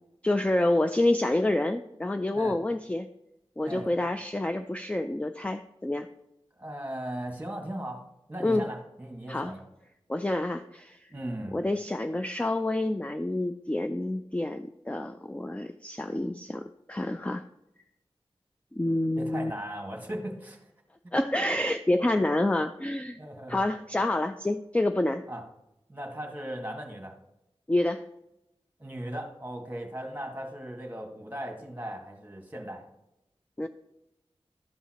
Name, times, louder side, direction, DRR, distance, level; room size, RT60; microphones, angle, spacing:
voice 1, 0.2-3.1 3.6-6.1 8.4-8.7 9.3-9.5 10.1-11.1 11.5-17.4 18.7-19.5 21.1-23.2 23.5-25.2 27.7-28.0 33.6-33.7, left 1 dB, 10° left, 8 dB, 0.3 m, -28 dB
voice 2, 6.6-8.0 8.3-9.6 11.1-11.6 19.1-20.7 23.2-23.6 25.3-25.4 25.9-27.1 28.8-32.8, right 1 dB, 15° right, 2 dB, 1.7 m, -37 dB
12.5 x 5.5 x 2.9 m, 0.87 s
wide cardioid pair, 70°, 10 cm